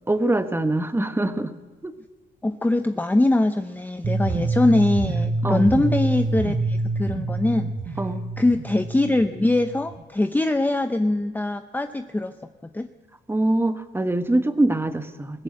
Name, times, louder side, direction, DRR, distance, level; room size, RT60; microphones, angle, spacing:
voice 1, 0.1-1.5 1.8-1.9 5.4-5.7 8.0-8.2 13.3-15.4, right 1 dB, 10° right, 9 dB, 1.4 m, -23 dB
voice 2, 2.4-8.0 8.4-12.3 12.7-12.9, left 2 dB, 10° left, 8 dB, 0.7 m, -22 dB
sound 1, 4.0-10.0, right 3 dB, 40° right, 1.6 m, -27 dB
21.0 x 15.5 x 8.6 m, 1.3 s
cardioid pair, 90°, 20 cm